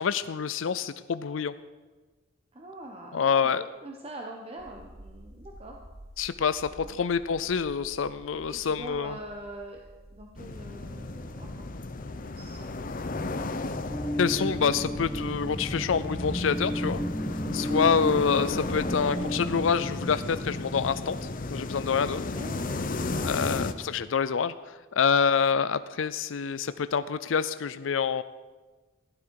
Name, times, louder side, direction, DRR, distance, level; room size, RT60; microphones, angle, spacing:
voice 1, 0.0-1.5 3.1-3.6 6.2-9.1 14.2-17.0 17.5-21.2 21.5-22.3 23.2-24.5 24.9-28.2, left 6 dB, 75° left, 13 dB, 0.5 m, -27 dB
voice 2, 2.5-5.8 6.7-7.0 8.3-9.8 10.1-11.8 12.0-13.1 13.4-14.0 17.7-18.0 22.1-23.5 25.7-25.8, right 1 dB, 30° right, 1 dB, 1.1 m, -44 dB
sound 1, 4.6-13.0, equal, 55° right, 2.5 m, -51 dB
sound 2, 10.4-23.7, left 3 dB, 45° left, 0.7 m, -35 dB
sound 3, 12.8-21.9, equal, 15° left, 1.1 m, -34 dB
15.5 x 12.0 x 4.8 m, 1.3 s
head